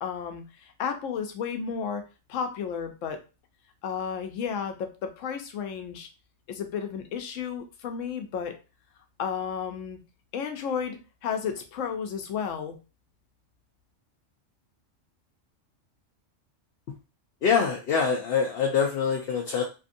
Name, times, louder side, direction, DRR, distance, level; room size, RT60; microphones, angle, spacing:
voice 1, 0.0-2.0 2.3-3.2 3.8-6.1 6.5-8.6 9.2-10.0 10.3-12.8, left 7 dB, 85° left, 6 dB, 1.0 m, -32 dB
voice 2, 17.4-19.6, left 6 dB, 60° left, 1 dB, 0.7 m, -24 dB
2.7 x 2.6 x 2.5 m, 0.31 s
omnidirectional pair, 1.3 m